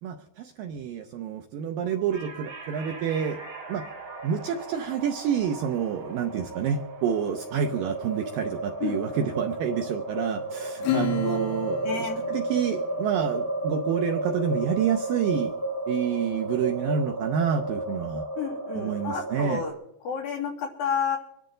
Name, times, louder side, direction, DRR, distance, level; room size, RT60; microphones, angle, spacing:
voice 1, 0.0-3.4 3.7-3.9 4.2-15.5 15.9-18.2 18.7-19.6, right 8 dB, 75° right, 5 dB, 2.1 m, -28 dB
sound 1, 1.9-19.7, right 2 dB, 60° right, 0.9 m, -33 dB
sound 2, 2.1-9.0, right 2 dB, 30° right, 5.6 m, -47 dB
voice 2, 8.8-9.3 11.2-11.4 11.8-12.2 18.4-19.7 20.0-21.2, left 6 dB, 60° left, -1 dB, 4.5 m, -30 dB
Acoustic guitar / Strum, 10.8-13.7, left 12 dB, 80° left, 3.1 m, -33 dB
25.0 x 11.5 x 3.8 m, 0.80 s
omnidirectional pair, 4.7 m